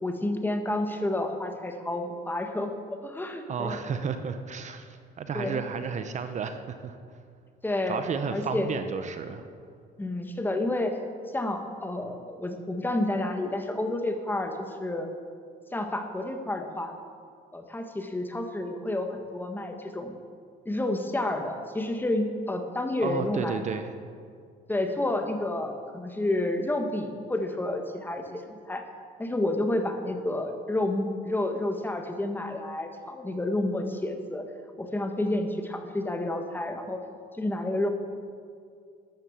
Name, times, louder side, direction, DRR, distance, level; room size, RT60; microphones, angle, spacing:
voice 1, 0.0-3.8 5.3-5.6 7.6-8.0 8.3-8.7 10.0-11.0 11.3-15.1 15.7-16.9 17.5-20.1 20.6-23.6 24.7-28.8 29.2-34.4 34.8-37.0 37.3-37.9, left 1 dB, 10° left, 5 dB, 1.5 m, -30 dB
voice 2, 3.5-7.0 7.9-9.5 23.0-23.9, right 6 dB, 45° right, 8 dB, 0.9 m, -32 dB
13.0 x 10.5 x 7.3 m, 2.2 s
cardioid pair, 110°, 17 cm